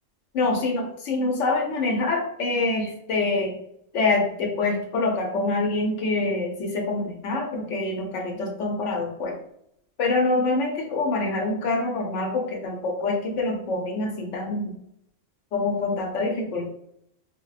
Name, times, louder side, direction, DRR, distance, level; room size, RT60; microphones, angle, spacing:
voice 1, 0.3-3.6 3.9-9.4 10.0-14.8 15.5-16.7, left 3 dB, 75° left, 2 dB, 0.9 m, -25 dB
3.5 x 2.2 x 2.3 m, 0.73 s
omnidirectional pair, 1.3 m